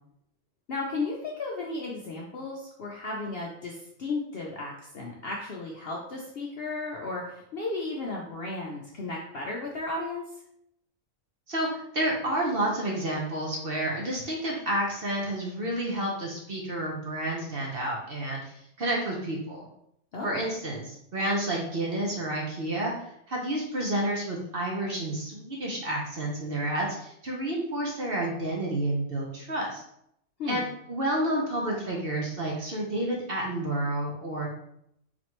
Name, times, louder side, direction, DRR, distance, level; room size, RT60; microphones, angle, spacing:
voice 1, 0.7-10.2 20.1-20.4 30.4-30.7, left 3 dB, 60° left, -2 dB, 0.7 m, -34 dB
voice 2, 11.5-19.6 20.2-29.8 30.5-34.5, right 1 dB, 45° right, -2 dB, 0.9 m, -30 dB
4.2 x 3.0 x 2.9 m, 0.75 s
omnidirectional pair, 1.5 m